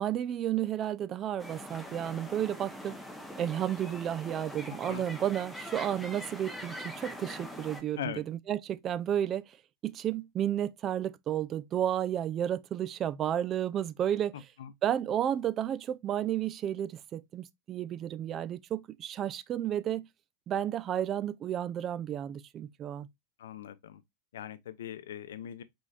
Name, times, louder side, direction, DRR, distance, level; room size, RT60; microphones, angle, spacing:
voice 1, 0.0-2.9 3.4-9.6 9.8-14.3 14.8-20.1 20.5-23.1, right 10 dB, 30° right, 0.3 m, -32 dB
sound 1, 1.4-7.8, left 1 dB, 5° left, 0.9 m, -43 dB
voice 2, 14.3-14.7 23.4-24.0 24.3-25.6, left 10 dB, 60° left, 0.6 m, -41 dB
4.9 x 3.9 x 2.4 m
figure-of-eight pair, 90°, 0 cm